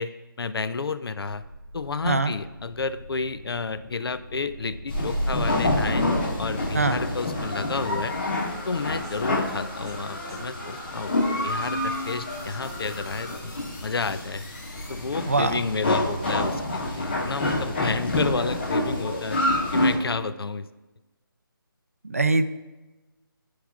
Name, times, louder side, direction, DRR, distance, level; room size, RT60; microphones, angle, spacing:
voice 1, 0.0-1.4 1.7-6.1 6.4-8.1 8.7-11.1 11.4-13.5 13.8-14.4 14.9-19.4 19.7-20.7, left 4 dB, 90° left, 13 dB, 0.5 m, -31 dB
sound 1, 1.5-15.6, left 1 dB, 45° left, 1.8 m, -45 dB
sound 2, 4.9-19.9, left 1 dB, 30° left, 2.1 m, -27 dB
sound 3, 7.3-13.4, left 1 dB, 10° right, 0.8 m, -42 dB
voice 2, 15.3-15.6 22.0-22.4, right 3 dB, 40° right, 11 dB, 0.4 m, -22 dB
13.5 x 4.8 x 2.4 m, 1.1 s
hypercardioid pair, 180°, 12 cm